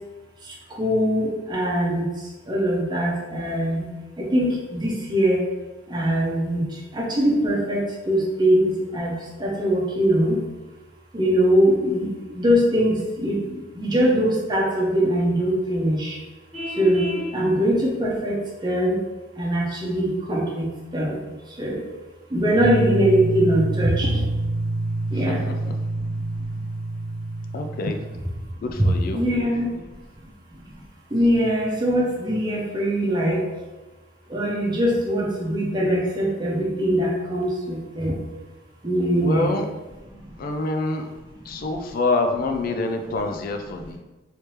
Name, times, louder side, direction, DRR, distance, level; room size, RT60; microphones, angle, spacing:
voice 1, 0.4-3.9 4.2-5.4 5.9-10.4 11.1-16.2 16.7-19.0 19.4-21.8 22.3-24.2 25.1-25.4 25.9-26.2 26.5-26.6 28.8-29.7 30.2-30.8 31.1-33.5 34.3-38.1 38.8-39.6 40.1-40.5 41.5-41.7, equal, 25° right, -3 dB, 0.8 m, -22 dB
Vehicle horn car horn honking, 16.5-17.3, left 1 dB, 5° left, 1.3 m, -31 dB
sound 1, 22.6-28.5, right 2 dB, 80° right, 0.4 m, -27 dB
voice 2, 25.1-25.5 27.5-28.0 28.6-29.2 39.1-39.7 40.4-41.1 41.5-44.0, left 2 dB, 50° left, 5 dB, 0.3 m, -26 dB
3.2 x 3.2 x 2.9 m, 1.2 s
head